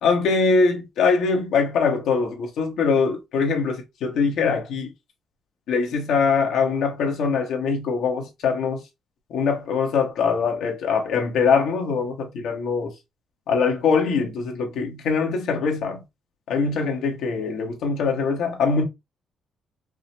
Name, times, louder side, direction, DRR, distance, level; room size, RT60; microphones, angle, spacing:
voice 1, 0.0-4.9 5.7-8.8 9.3-12.9 13.5-16.0 16.5-18.8, left 5 dB, 80° left, 1.0 m, -22 dB
4.8 x 2.1 x 2.8 m
cardioid pair, 90°, 0 cm